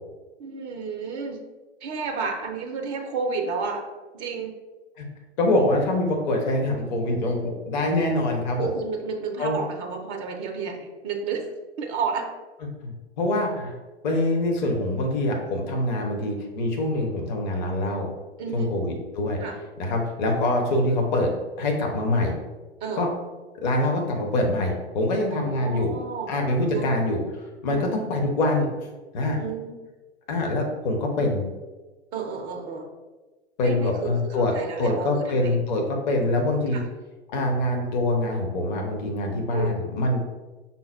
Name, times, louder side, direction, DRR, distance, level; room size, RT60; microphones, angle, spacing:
voice 1, 0.4-1.4 1.8-3.8 4.1-4.5 8.6-11.5 11.8-12.3 18.4-18.7 19.4-19.6 22.8-23.1 25.5-26.3 26.6-26.9 27.7-27.9 29.4-29.8 32.1-32.9 33.6-35.6 36.1-36.4 36.7-36.8 39.5-39.8, right 5 dB, 15° right, 2 dB, 0.4 m, -31 dB
voice 2, 5.4-8.7 9.4-9.6 12.8-13.7 14.0-18.1 18.5-19.4 19.8-21.3 21.6-22.4 23.0-23.1 23.6-25.9 26.3-27.2 27.6-28.7 29.1-29.4 30.3-31.4 33.6-34.5 34.8-36.8 37.3-40.2, left 1 dB, 40° left, 2 dB, 0.9 m, -24 dB
5.5 x 2.2 x 4.3 m, 1.2 s
figure-of-eight pair, 100°, 33 cm